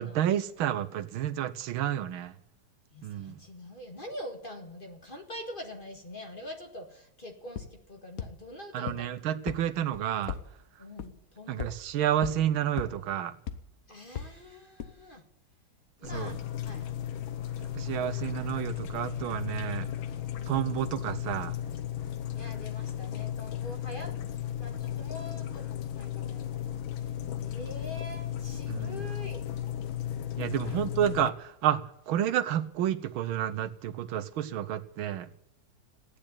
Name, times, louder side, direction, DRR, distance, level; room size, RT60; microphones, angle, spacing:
voice 1, 0.0-2.3 3.0-3.4 8.7-10.4 11.5-13.3 16.1-16.4 17.6-19.9 20.5-21.6 28.7-29.0 30.4-35.3, right 11 dB, 85° right, 1.6 m, -30 dB
voice 2, 2.9-9.4 10.8-11.7 13.9-15.2 16.0-16.4 16.6-16.9 18.0-19.2 19.8-20.0 20.4-20.6 22.3-24.1 24.6-27.1 27.4-29.5 30.6-30.8, left 1 dB, 25° left, 1.8 m, -45 dB
sound 1, 7.6-7.7 8.2-8.3 8.9-9.0 9.5-9.6 9.9-10.4 11.0-11.1 11.6-11.7 12.2-12.3 12.8-12.9 13.5-13.6 14.2-14.3 14.8-14.9, left 9 dB, 50° left, 1.2 m, -34 dB
sound 2, 16.0-31.3, left 10 dB, 80° left, 1.8 m, -35 dB
15.0 x 9.9 x 8.9 m
omnidirectional pair, 2.2 m